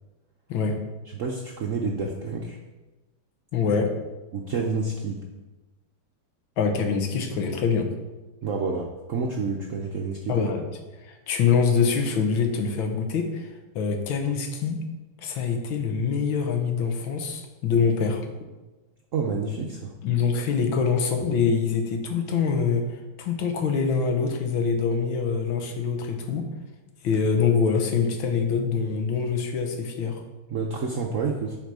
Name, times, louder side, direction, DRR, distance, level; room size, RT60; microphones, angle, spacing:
voice 1, 1.1-2.6 4.3-5.2 8.4-10.5 19.1-19.9 30.5-31.6, right 4 dB, 70° right, 0 dB, 0.7 m, -29 dB
voice 2, 3.5-3.9 6.6-7.9 10.3-10.7 11.0-13.5 13.8-14.8 15.2-18.2 20.0-26.5 27.0-30.2, left 5 dB, 80° left, 5 dB, 1.8 m, -24 dB
10.5 x 4.4 x 4.8 m, 1.1 s
omnidirectional pair, 2.2 m